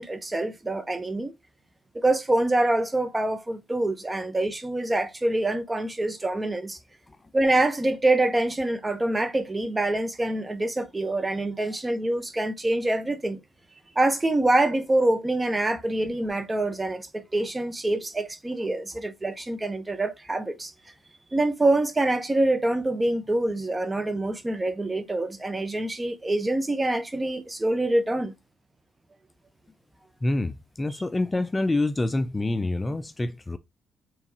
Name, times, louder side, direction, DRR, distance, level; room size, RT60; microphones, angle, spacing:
voice 1, 0.0-1.3 1.9-6.8 7.3-13.4 14.0-20.7 21.3-28.3, right 2 dB, 20° right, 0.8 m, -25 dB
voice 2, 30.2-33.6, left 2 dB, 20° left, 0.3 m, -27 dB
4.6 x 3.4 x 2.7 m
cardioid pair, 90°, 0 cm